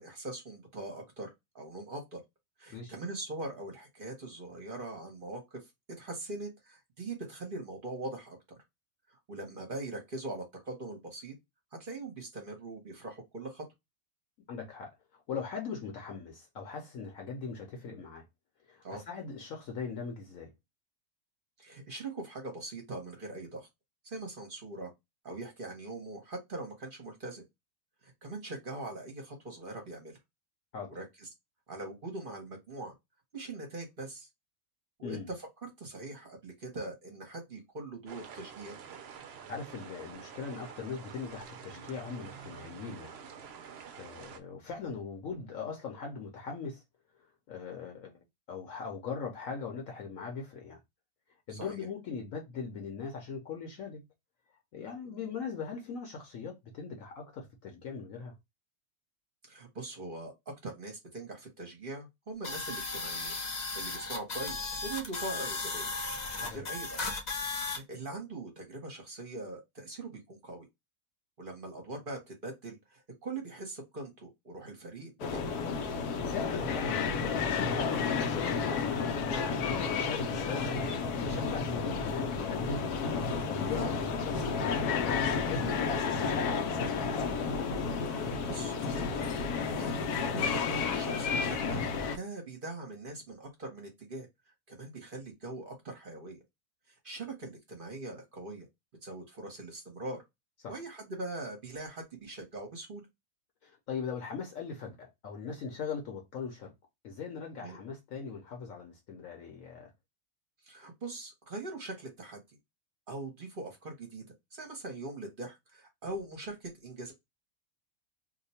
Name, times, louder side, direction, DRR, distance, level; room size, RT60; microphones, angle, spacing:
voice 1, 0.0-2.2 2.6-5.6 6.0-8.4 9.1-11.3 11.8-13.6 18.8-19.0 21.6-23.7 24.0-24.9 25.2-27.4 28.0-30.2 30.9-31.0 31.7-32.9 33.3-34.3 35.0-35.2 35.6-38.8 51.5-51.9 55.1-55.2 59.5-63.4 63.7-65.9 66.4-67.0 67.7-70.7 71.4-75.5 83.8-84.0 88.1-89.4 89.8-91.9 92.1-94.3 94.7-96.4 96.9-98.7 99.0-100.2 100.7-103.0 107.6-107.8 110.6-112.4 113.1-114.2 114.5-117.1, right 2 dB, 40° right, 0.9 m, -42 dB
voice 2, 14.5-18.2 18.6-20.5 30.7-30.9 35.0-35.3 39.5-43.2 44.0-46.8 47.2-48.2 48.5-50.8 51.5-54.0 54.7-58.4 66.4-66.7 76.2-79.2 79.6-83.1 83.4-85.0 85.5-87.1 100.6-100.8 103.6-106.7 107.0-109.9, left 5 dB, 65° left, 1.1 m, -40 dB
sound 1, 38.1-44.4, right 7 dB, 65° right, 0.6 m, -48 dB
sound 2, 62.4-67.8, left 3 dB, 45° left, 0.5 m, -36 dB
sound 3, 75.2-92.2, left 5 dB, 90° left, 1.1 m, -31 dB
2.8 x 2.2 x 4.1 m
omnidirectional pair, 1.6 m